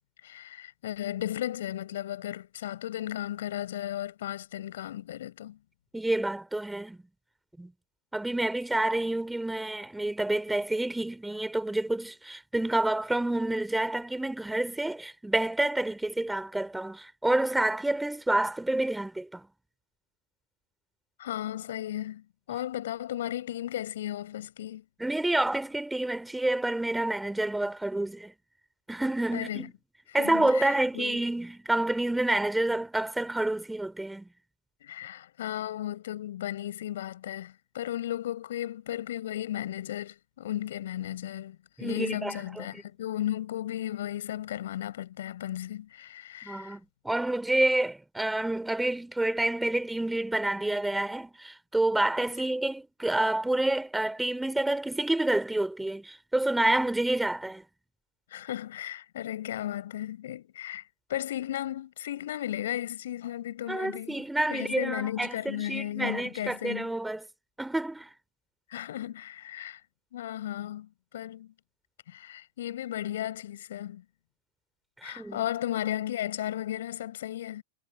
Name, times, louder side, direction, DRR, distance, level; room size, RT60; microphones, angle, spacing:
voice 1, 0.2-5.6 21.2-24.8 29.3-29.7 30.1-31.2 34.8-46.8 58.3-60.8 61.1-64.2 64.5-66.9 68.7-69.8 70.1-71.5 72.1-74.0 75.0-77.6, left 12 dB, 60° left, 7.2 m, -35 dB
voice 2, 5.9-7.0 7.6-7.7 8.1-19.5 25.0-28.3 28.9-29.7 30.1-34.3 41.8-42.8 46.4-57.6 63.7-67.2 67.6-68.1 75.0-75.4, right 1 dB, 5° right, 4.0 m, -28 dB
figure-of-eight pair, 90°, 0 cm